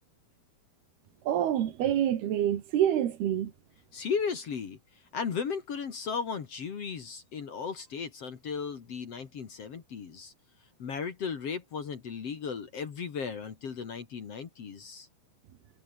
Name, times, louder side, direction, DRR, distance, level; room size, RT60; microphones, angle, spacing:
voice 1, 1.3-3.5, right 11 dB, 80° right, 3.9 m, -27 dB
voice 2, 3.9-4.8 5.1-10.3 10.8-15.1, left 6 dB, 45° left, 2.6 m, -35 dB
omnidirectional pair, 4.5 m